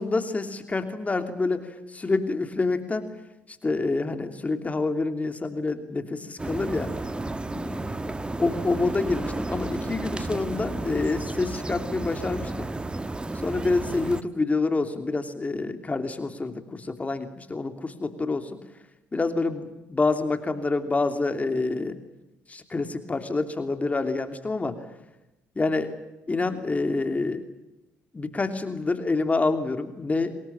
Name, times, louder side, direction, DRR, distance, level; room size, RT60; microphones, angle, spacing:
voice 1, 0.0-3.1 3.5-6.9 7.4-12.7 13.3-18.6 19.1-22.0 22.5-24.9 25.5-26.0 26.3-27.5 28.1-30.4, left 3 dB, 25° left, 8 dB, 3.0 m, -27 dB
sound 1, 6.4-14.2, right 2 dB, 15° right, 1.5 m, -32 dB
25.5 x 20.5 x 8.7 m, 0.98 s
supercardioid pair, 65°, 6 cm